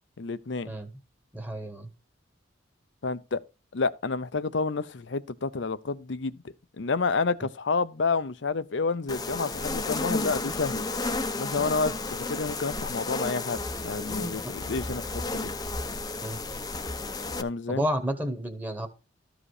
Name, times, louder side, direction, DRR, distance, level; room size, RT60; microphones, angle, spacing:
voice 1, 0.2-0.7 3.0-3.4 3.7-6.4 6.8-10.8 11.4-15.5 17.4-17.8, left 4 dB, 65° left, 0.6 m, -29 dB
voice 2, 1.3-1.9 16.2-16.4 17.7-18.9, equal, 10° right, 1.5 m, -30 dB
sound 1, 9.1-17.4, left 3 dB, 20° left, 0.8 m, -32 dB
13.5 x 5.0 x 4.9 m
head